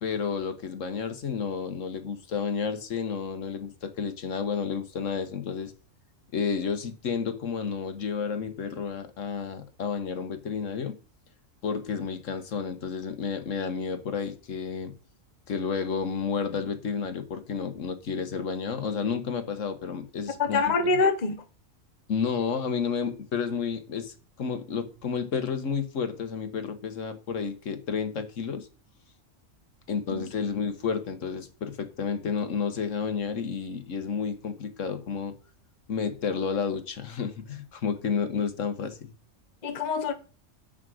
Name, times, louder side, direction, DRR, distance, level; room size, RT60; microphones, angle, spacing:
voice 1, 0.0-5.7 6.3-11.0 11.6-14.9 15.5-20.7 22.1-28.7 29.9-35.3 35.9-39.1, left 6 dB, 70° left, 1.4 m, -31 dB
voice 2, 20.4-21.4 30.1-30.2 39.6-40.1, left 4 dB, 35° left, 0.9 m, -25 dB
8.0 x 6.2 x 6.3 m
omnidirectional pair, 1.4 m